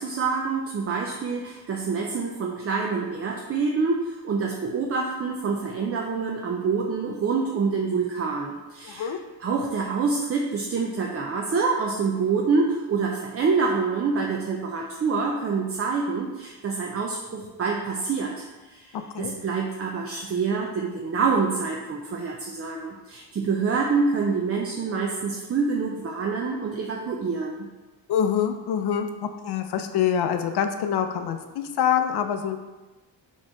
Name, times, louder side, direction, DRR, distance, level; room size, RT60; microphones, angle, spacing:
voice 1, 0.0-9.1 9.4-27.7, right 4 dB, 30° right, 0 dB, 0.4 m, -26 dB
voice 2, 8.9-9.2 19.1-19.3 28.1-32.6, left 8 dB, 55° left, 7 dB, 0.5 m, -25 dB
4.2 x 3.1 x 3.8 m, 1.2 s
cardioid pair, 80°, 46 cm